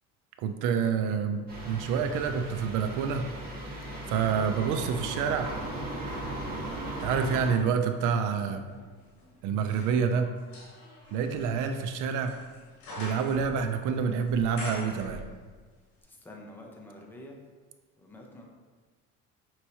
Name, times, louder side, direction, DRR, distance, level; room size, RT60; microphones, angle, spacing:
voice 1, 0.4-3.3 4.1-5.5 7.0-8.6 9.4-10.3 11.1-12.4 13.0-15.2, right 6 dB, 75° right, 7 dB, 0.5 m, -28 dB
sound 1, 1.5-7.5, right 1 dB, 30° right, 1.4 m, -37 dB
sound 2, 1.7-3.8 4.4-15.7 16.0-16.1, left 1 dB, 70° left, 1.1 m, -47 dB
voice 2, 16.1-17.4 18.0-18.5, left 1 dB, 5° left, 0 dB, 0.6 m, -47 dB
5.5 x 3.0 x 2.7 m, 1.4 s
cardioid pair, 115°, 31 cm